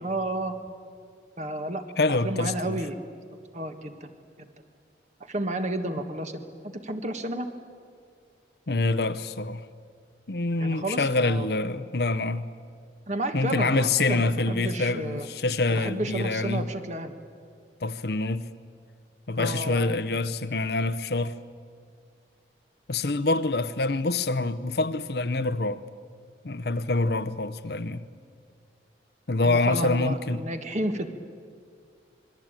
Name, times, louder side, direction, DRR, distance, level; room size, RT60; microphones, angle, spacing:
voice 1, 0.0-0.6 1.4-1.8 2.1-3.0 3.5-4.1 4.4-4.5 5.2-7.5 10.6-11.5 13.1-15.3 15.7-17.1 19.3-19.9 29.4-31.1, right 1 dB, 40° right, 1.6 m, -31 dB
voice 2, 2.0-2.8 8.7-9.6 10.3-12.4 13.3-16.7 17.8-18.4 19.3-21.4 22.9-25.8 26.4-28.0 29.3-30.4, left 3 dB, 60° left, 0.8 m, -26 dB
26.5 x 21.5 x 9.0 m
head